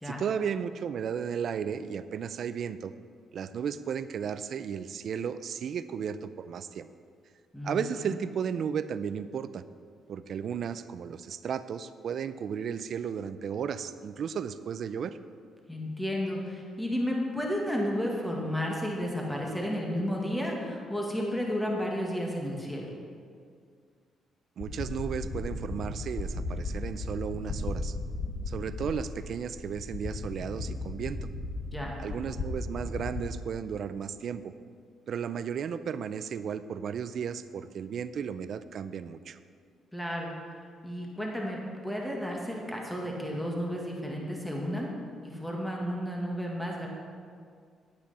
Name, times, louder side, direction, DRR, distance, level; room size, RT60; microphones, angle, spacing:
voice 1, 0.0-2.9 3.3-6.9 7.6-9.6 10.1-15.2 24.6-27.9 28.5-31.3 32.0-34.5 35.1-39.4, right 7 dB, 60° right, 13 dB, 0.4 m, -34 dB
voice 2, 7.5-8.2 15.7-22.9 31.7-31.9 39.9-40.3 40.8-44.9 45.2-46.9, equal, 5° left, -1 dB, 1.8 m, -32 dB
sound 1, 24.6-33.3, left 2 dB, 50° left, 1.4 m, -36 dB
10.5 x 8.6 x 4.2 m, 2.1 s
cardioid pair, 90°, 0 cm